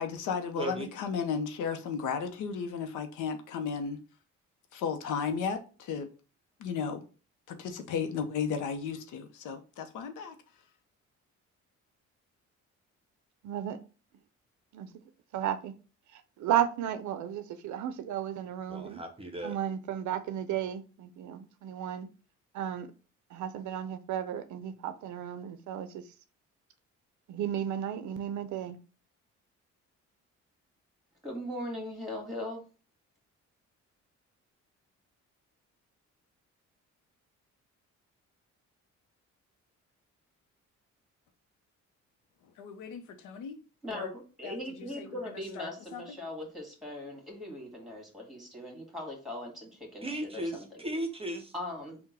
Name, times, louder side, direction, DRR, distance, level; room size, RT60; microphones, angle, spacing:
voice 1, 0.0-4.0 4.7-6.1 6.6-7.0 7.5-10.3 42.6-43.6 43.9-44.1 44.4-45.1 45.3-46.2, left 6 dB, 85° left, 0.7 m, -35 dB
voice 2, 0.6-0.9 18.7-19.6 50.0-51.5, right 1 dB, 20° right, 0.7 m, -36 dB
voice 3, 13.4-13.8 14.7-14.9 15.3-15.7 16.1-19.0 19.4-22.1 22.5-22.9 23.3-26.0 27.3-28.8, right 10 dB, 70° right, 0.5 m, -34 dB
voice 4, 31.2-32.6 43.8-50.6 51.5-52.0, left 1 dB, ahead, 1.7 m, -40 dB
3.7 x 2.2 x 4.1 m
cardioid pair, 90°, 30 cm